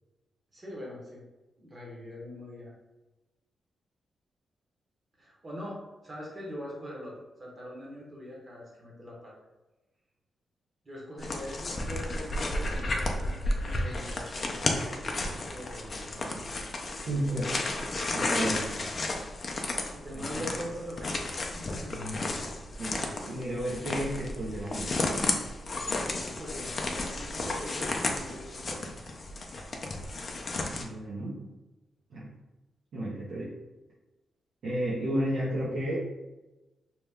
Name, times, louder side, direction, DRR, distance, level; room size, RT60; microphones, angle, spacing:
voice 1, 0.5-1.2 1.6-2.7 5.2-9.3 10.8-14.6 14.9-16.7 17.1-17.4 19.9-21.9 25.7-28.9, equal, 25° right, -4 dB, 0.9 m, -43 dB
sound 1, 11.2-30.9, left 2 dB, 35° left, 0.4 m, -33 dB
voice 2, 17.1-17.5 18.1-18.8 20.2-20.5 21.9-22.2 22.8-25.0 30.7-31.4 32.1-32.3 32.9-33.5 34.6-36.0, right 1 dB, 70° right, -8 dB, 0.7 m, -32 dB
2.8 x 2.2 x 3.4 m, 1.1 s
wide cardioid pair, 155°, 0 cm